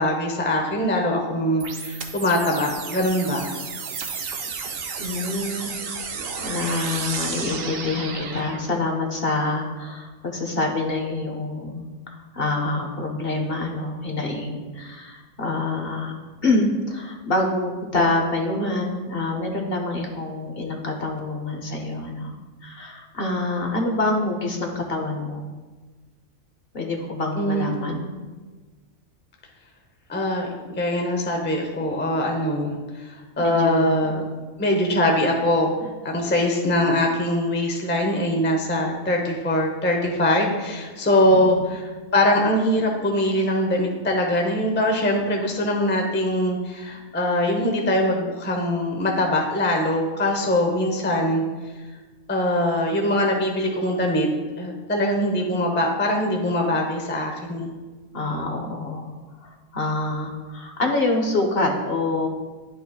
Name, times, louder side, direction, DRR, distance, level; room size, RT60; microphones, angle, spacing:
voice 1, 0.0-3.5 27.3-27.9 30.1-30.5 30.8-34.2 34.6-35.7 36.0-51.4 52.3-54.3 54.6-57.7, left 1 dB, 10° left, 1 dB, 0.6 m, -22 dB
sound 1, 1.6-8.6, right 5 dB, 75° right, 1.1 m, -32 dB
voice 2, 5.0-5.7 6.1-16.1 16.4-22.3 22.6-25.4 26.7-28.1 33.4-34.1 41.3-41.6 58.1-59.1 59.4-62.3, left 2 dB, 50° left, 2 dB, 1.0 m, -26 dB
11.0 x 5.4 x 2.3 m, 1.3 s
omnidirectional pair, 1.4 m